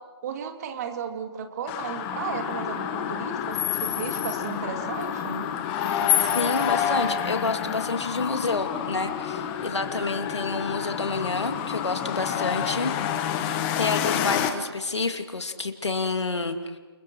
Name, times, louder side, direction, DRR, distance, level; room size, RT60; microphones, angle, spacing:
voice 1, 0.2-5.5, right 7 dB, 35° right, 5 dB, 2.8 m, -34 dB
sound 1, 1.7-14.5, left 9 dB, 20° left, 1.7 m, -28 dB
voice 2, 6.3-12.9 13.8-16.8, left 3 dB, 80° left, 6 dB, 2.6 m, -29 dB
29.0 x 28.5 x 4.7 m, 1.3 s
figure-of-eight pair, 145°, 14 cm